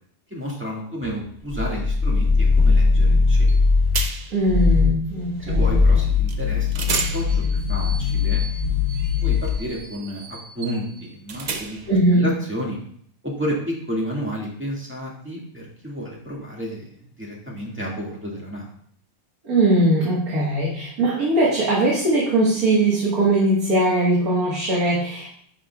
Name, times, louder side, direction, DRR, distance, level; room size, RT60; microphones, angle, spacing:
voice 1, 0.3-3.7 5.4-8.4 9.2-11.8 12.1-12.8 13.2-18.7, equal, 10° right, -5 dB, 1.7 m, -31 dB
sound 1, 1.4-4.1 4.4-5.0 5.4-9.6, left 4 dB, 60° left, 2.7 m, -19 dB
sound 2, 3.5-3.6 3.9-4.5 6.3-6.4 6.7-12.0, right 4 dB, 60° right, 0.4 m, -32 dB
voice 2, 4.3-5.8 11.9-12.3 19.4-25.3, right 1 dB, 75° right, -6 dB, 1.9 m, -20 dB
10.0 x 5.2 x 2.3 m, 0.62 s
omnidirectional pair, 1.5 m